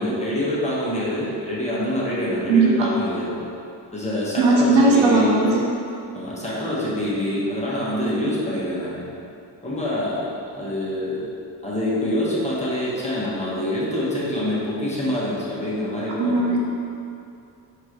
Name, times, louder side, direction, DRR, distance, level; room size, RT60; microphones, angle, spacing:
voice 1, 0.0-3.4 3.9-5.3 6.1-9.0 9.6-10.3 10.5-11.2 11.6-16.6, left 1 dB, 15° left, -7 dB, 1.3 m, -25 dB
voice 2, 2.5-2.9 4.4-5.6 16.2-16.6, right 3 dB, 80° right, -3 dB, 0.8 m, -17 dB
4.4 x 2.9 x 3.1 m, 2.6 s
supercardioid pair, 55°, 45 cm